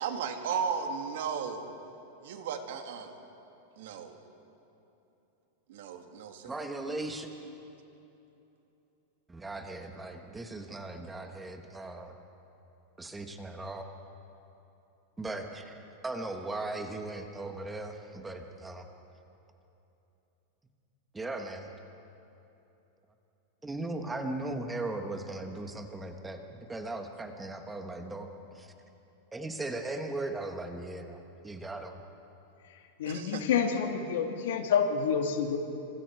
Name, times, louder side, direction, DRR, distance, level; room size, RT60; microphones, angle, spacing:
voice 1, 0.0-1.7 2.2-3.1 3.8-4.2 5.7-6.5 33.0-33.4, right 6 dB, 65° right, 5 dB, 2.2 m, -35 dB
voice 2, 6.4-7.3 9.3-12.1 13.0-13.8 15.2-18.8 21.1-21.7 23.6-28.3 28.5-28.7 29.3-32.0, right 2 dB, 5° right, 5 dB, 1.2 m, -38 dB
voice 3, 33.0-35.6, left 7 dB, 75° left, 4 dB, 2.3 m, -28 dB
26.5 x 26.0 x 4.7 m, 3.0 s
supercardioid pair, 175°, 0 cm